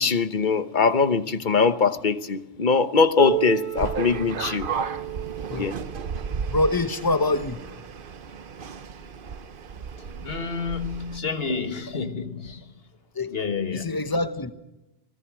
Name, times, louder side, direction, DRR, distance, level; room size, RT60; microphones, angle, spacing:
voice 1, 0.0-4.7 5.5-5.7, left 5 dB, 50° left, 1.1 m, -22 dB
Piano, 3.2-8.5 9.4-9.5 10.0-10.1 10.8-10.9 12.0-12.1, right 11 dB, 40° right, 2.4 m, -34 dB
sound 1, 3.7-11.2, right 6 dB, 60° right, 1.0 m, -34 dB
voice 2, 6.5-7.6 13.1-13.3 13.7-14.5, left 2 dB, 20° left, 1.1 m, -25 dB
voice 3, 10.0-12.8 13.3-14.0, left 5 dB, 70° left, 1.8 m, -30 dB
25.0 x 18.0 x 6.1 m
omnidirectional pair, 1.0 m